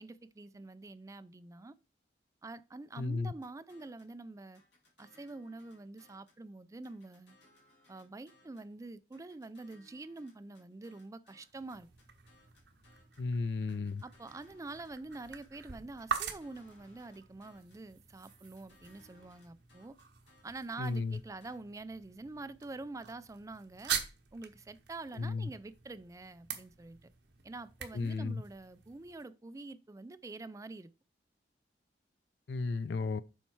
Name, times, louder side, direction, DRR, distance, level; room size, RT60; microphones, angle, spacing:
voice 1, 0.0-1.8 2.4-4.6 5.0-7.4 7.9-11.9 14.0-20.0 20.4-23.9 24.3-27.1 27.4-30.9, right 2 dB, 20° right, 0.4 m, -46 dB
voice 2, 3.0-3.3 13.2-14.0 20.8-21.2 25.2-25.5 27.9-28.4 32.5-33.2, left 3 dB, 70° left, 0.5 m, -34 dB
sound 1, 3.4-4.2 4.5-6.4 6.8-8.7 9.1-13.3 13.7-15.6 16.0-17.9 18.3-21.6, left 1 dB, 85° left, 2.8 m, -65 dB
sound 2, 11.4-29.3, right 7 dB, 75° right, 1.0 m, -45 dB
7.2 x 4.5 x 4.5 m
head